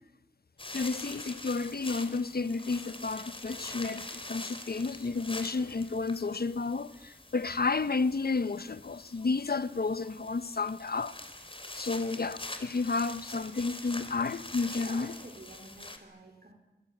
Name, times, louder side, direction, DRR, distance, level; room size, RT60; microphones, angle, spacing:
sound 1, 0.6-16.0, left 2 dB, 30° left, 3.7 m, -45 dB
voice 1, 0.7-11.1 11.7-15.1, left 4 dB, 60° left, 1.1 m, -31 dB
voice 2, 14.8-16.6, right 2 dB, 55° right, 3.6 m, -50 dB
27.0 x 23.0 x 9.3 m
wide cardioid pair, 60°, 18 cm